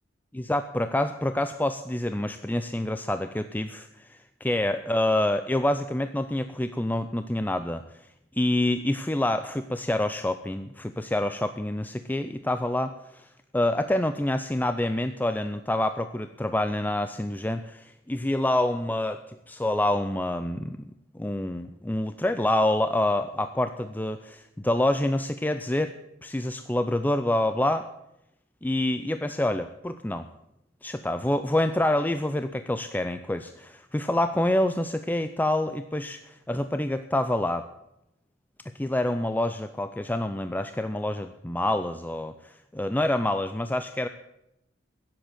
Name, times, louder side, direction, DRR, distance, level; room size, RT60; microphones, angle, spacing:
voice 1, 0.3-7.8 8.3-20.8 21.1-25.9 26.2-27.9 28.6-30.3 30.8-37.7 38.7-44.1, left 1 dB, 10° left, 9 dB, 0.5 m, -27 dB
16.5 x 7.7 x 9.0 m, 0.85 s
head